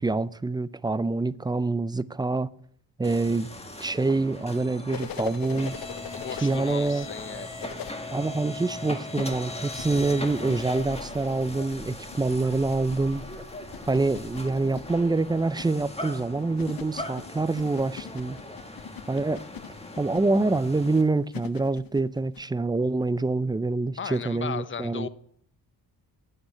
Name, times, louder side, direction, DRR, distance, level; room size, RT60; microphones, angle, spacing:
voice 1, 0.0-2.5 3.0-3.5 3.8-5.8 6.4-7.1 8.1-13.3 13.9-18.4 19.1-19.4 20.0-25.1, right 3 dB, 10° right, 0.4 m, -26 dB
sound 1, 3.0-21.0, left 2 dB, 15° left, 1.8 m, -39 dB
sound 2, 4.9-7.9 9.1-22.5 24.1-24.2, left 10 dB, 60° left, 0.8 m, -42 dB
voice 2, 6.2-7.8 24.0-25.1, left 7 dB, 30° left, 0.8 m, -36 dB
9.6 x 8.9 x 9.6 m
cardioid pair, 100°, 38 cm